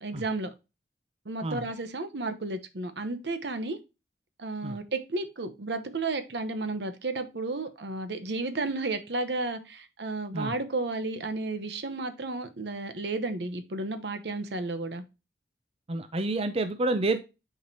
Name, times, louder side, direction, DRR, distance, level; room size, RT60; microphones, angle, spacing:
voice 1, 0.0-0.5 1.2-3.8 4.4-15.0, right 2 dB, 75° right, 0.9 m, -32 dB
voice 2, 15.9-17.2, right 2 dB, 35° right, 0.5 m, -29 dB
8.9 x 4.8 x 2.7 m
head